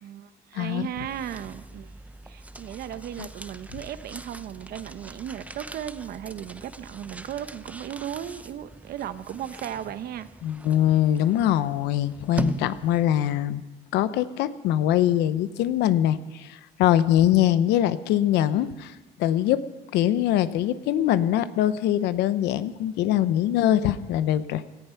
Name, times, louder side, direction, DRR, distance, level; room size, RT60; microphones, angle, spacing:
voice 1, 0.0-1.9 2.2-10.3, right 10 dB, 65° right, 0.9 m, -36 dB
voice 2, 0.5-0.9 10.4-13.6 13.9-19.6 19.9-24.6, left 11 dB, 85° left, 0.8 m, -23 dB
sound 1, 0.7-13.3, right 2 dB, 10° right, 0.7 m, -40 dB
17.5 x 14.0 x 5.8 m
cardioid pair, 110°, 17 cm